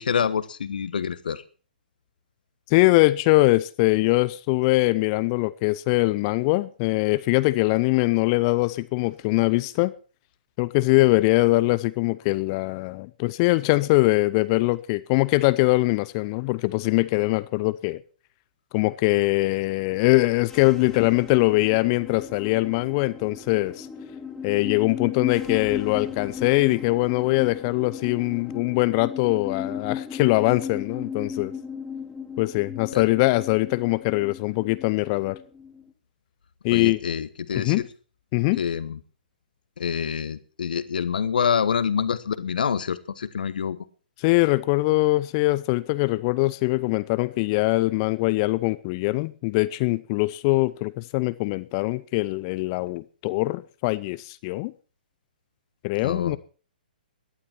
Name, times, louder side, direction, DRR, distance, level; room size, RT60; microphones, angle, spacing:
voice 1, 0.0-1.4 32.9-33.1 36.7-37.8 38.6-39.0 39.8-43.8 56.0-56.4, left 7 dB, 65° left, 1.3 m, -26 dB
voice 2, 2.7-9.9 10.6-18.0 18.7-23.9 24.4-31.5 32.4-35.4 36.6-37.0 37.5-37.9 38.3-38.6 44.2-54.7 55.8-56.4, left 22 dB, 30° left, 0.6 m, -22 dB
sound 1, 20.4-35.9, left 6 dB, 10° left, 2.0 m, -36 dB
18.0 x 11.5 x 4.5 m
figure-of-eight pair, 125°, 5 cm